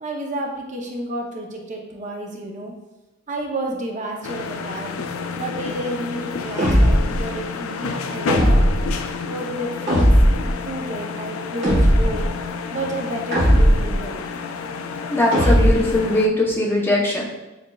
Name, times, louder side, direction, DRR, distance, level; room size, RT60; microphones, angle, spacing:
voice 1, 0.0-2.7 3.3-5.1 5.3-8.7 9.2-10.1 10.4-12.3 12.7-14.3, right 1 dB, 40° right, 1 dB, 0.7 m, -30 dB
sound 1, 4.2-16.3, left 5 dB, 90° left, 0.3 m, -30 dB
sound 2, 6.6-7.2 8.3-9.0 9.9-10.5 11.6-12.3 13.3-14.0 15.3-16.0, equal, 55° right, 1.4 m, -16 dB
voice 2, 15.1-17.2, left 1 dB, 10° left, -3 dB, 0.8 m, -20 dB
7.3 x 2.8 x 2.3 m, 1.1 s
head